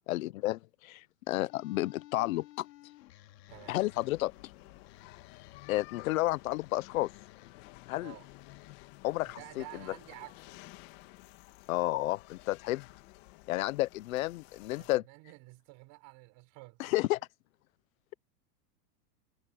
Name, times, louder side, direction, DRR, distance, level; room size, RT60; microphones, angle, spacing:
voice 1, 0.1-2.7 3.7-4.3 5.7-7.1 7.9-8.1 9.0-9.6 11.7-12.8 13.5-15.0 16.8-17.2, left 17 dB, 55° left, 0.9 m, -31 dB
sound 1, 1.5-8.9, left 15 dB, 90° left, 2.4 m, -57 dB
sound 2, 3.5-15.0, left 21 dB, 40° left, 2.5 m, -53 dB
voice 2, 9.2-10.5 14.8-16.8, right 26 dB, 35° right, 6.8 m, -50 dB
supercardioid pair, 180°, 48 cm